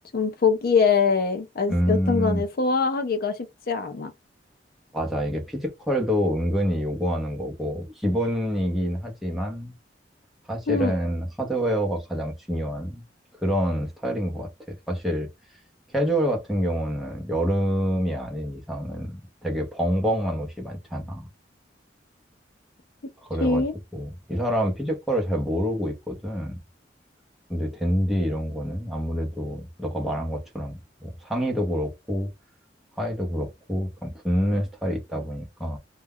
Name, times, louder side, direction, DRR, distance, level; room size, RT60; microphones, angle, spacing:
voice 1, 0.1-3.4 3.7-4.1 10.7-10.9 23.4-23.7, left 5 dB, 55° left, 0.5 m, -23 dB
voice 2, 1.7-2.4 4.9-9.7 10.5-13.0 13.4-14.5 14.9-15.3 15.9-21.3 23.2-23.6 23.9-26.6 27.5-32.3 33.0-35.8, equal, ahead, 0.7 m, -27 dB
2.3 x 2.1 x 3.5 m
head